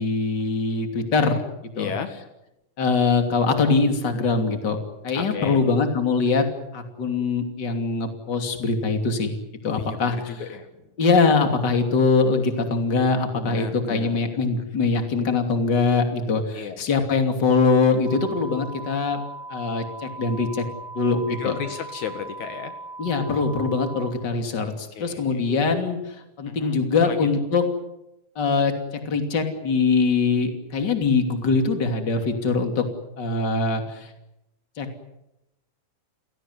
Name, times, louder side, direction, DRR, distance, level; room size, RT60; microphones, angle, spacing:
voice 1, 0.0-1.4 1.8-1.9 2.8-4.8 5.0-6.5 6.7-9.4 9.6-10.4 11.0-19.2 19.5-20.6 20.9-21.6 23.0-27.6 28.4-28.7 29.0-32.8 33.2-34.1 34.8-34.9, left 4 dB, 35° left, 5 dB, 3.3 m, -22 dB
voice 2, 1.8-2.1 5.1-5.7 9.7-10.7 13.4-14.4 16.5-16.8 21.1-22.7 25.0-25.2 26.5-26.8 27.0-27.2, left 7 dB, 70° left, 8 dB, 3.2 m, -33 dB
sound 1, 18.1-24.1, right 2 dB, 85° right, 5.5 m, -39 dB
30.0 x 17.5 x 9.7 m, 0.89 s
omnidirectional pair, 3.5 m